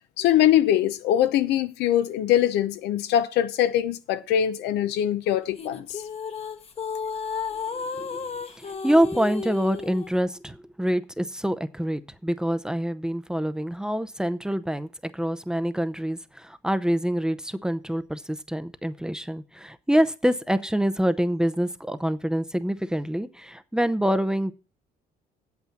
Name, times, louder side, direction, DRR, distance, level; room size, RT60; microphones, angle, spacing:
voice 1, 0.2-6.0, left 11 dB, 85° left, 0.8 m, -22 dB
sound 1, 5.6-10.1, left 6 dB, 35° left, 1.1 m, -33 dB
voice 2, 7.7-8.3 8.6-24.5, equal, 5° right, 0.6 m, -26 dB
8.4 x 7.8 x 5.8 m
cardioid pair, 110°, 17 cm